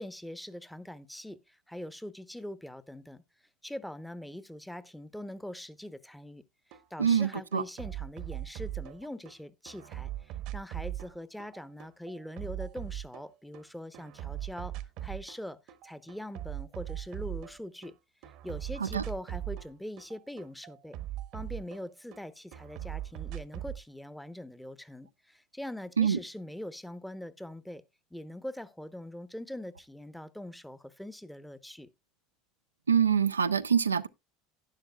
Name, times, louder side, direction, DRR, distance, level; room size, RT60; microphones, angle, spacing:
voice 1, 0.0-3.2 3.6-6.4 6.7-14.7 15.0-15.6 15.8-17.9 18.4-21.0 21.3-27.8 28.1-31.9, left 1 dB, 5° left, 0.8 m, -42 dB
sound 1, 6.7-6.8 7.1-9.3 9.7-13.6 13.9-15.4 15.7-17.9 18.2-22.2 22.5-23.8, right 13 dB, 55° right, 0.9 m, -40 dB
voice 2, 7.0-7.6 18.8-19.0 26.0-26.2 32.9-34.1, right 7 dB, 90° right, 0.4 m, -25 dB
11.5 x 10.5 x 2.3 m
hypercardioid pair, 75°, 0 cm